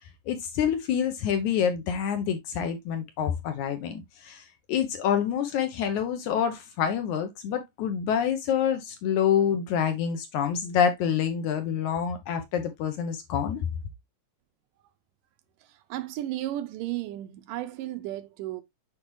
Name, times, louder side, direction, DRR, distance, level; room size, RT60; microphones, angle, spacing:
voice 1, 0.3-13.7, left 8 dB, 70° left, 2.0 m, -27 dB
voice 2, 15.9-18.6, right 14 dB, 80° right, 2.1 m, -33 dB
7.4 x 5.1 x 3.0 m
omnidirectional pair, 4.1 m